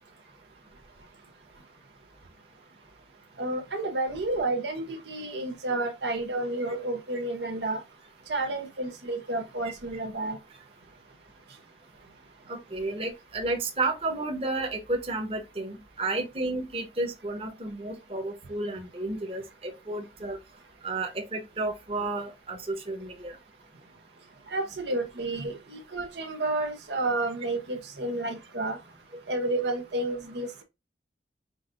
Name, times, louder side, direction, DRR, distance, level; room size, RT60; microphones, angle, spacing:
voice 1, 3.4-7.8 8.3-10.4 24.5-28.8 29.3-30.6, right 2 dB, 75° right, 1.0 m, -30 dB
voice 2, 12.5-20.4 20.8-23.4, right 2 dB, 35° right, 1.1 m, -32 dB
5.6 x 2.7 x 2.5 m
head